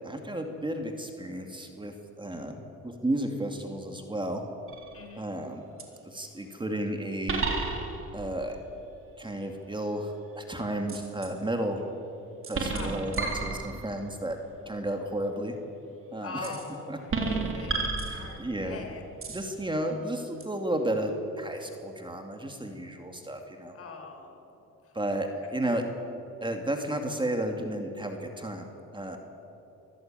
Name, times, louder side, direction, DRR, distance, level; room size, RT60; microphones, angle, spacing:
voice 1, 0.0-4.4 5.2-5.6 6.1-7.5 8.1-8.6 9.2-11.8 12.5-14.4 14.7-15.5 16.1-16.5 16.9-17.0 18.0-18.8 19.3-23.7 24.9-25.8 26.4-29.2, right 1 dB, 15° right, 4 dB, 2.4 m, -33 dB
sound 1, 4.7-5.1 5.8-5.9 7.3-8.2 10.9-11.3 12.4-14.0 16.4-16.7 17.1-18.7 19.2-19.5 20.4-20.5, right 3 dB, 45° right, 3.7 m, -31 dB
voice 2, 4.9-5.3 12.7-13.5 16.2-19.0 23.7-25.0, left 4 dB, 50° left, 3 dB, 4.3 m, -43 dB
24.0 x 14.5 x 9.1 m, 2.9 s
cardioid pair, 90°, 30 cm